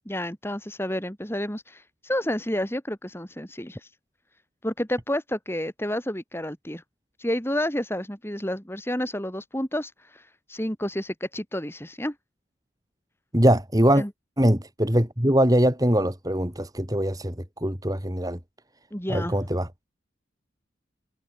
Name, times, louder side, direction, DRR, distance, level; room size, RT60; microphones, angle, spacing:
voice 1, 0.1-3.9 4.6-6.8 7.2-10.2 10.5-12.1 14.0-14.1 18.9-19.4, left 1 dB, 10° left, 3.5 m, -30 dB
voice 2, 13.3-14.0 14.4-18.4 19.1-19.7, equal, 20° right, 3.8 m, -22 dB
head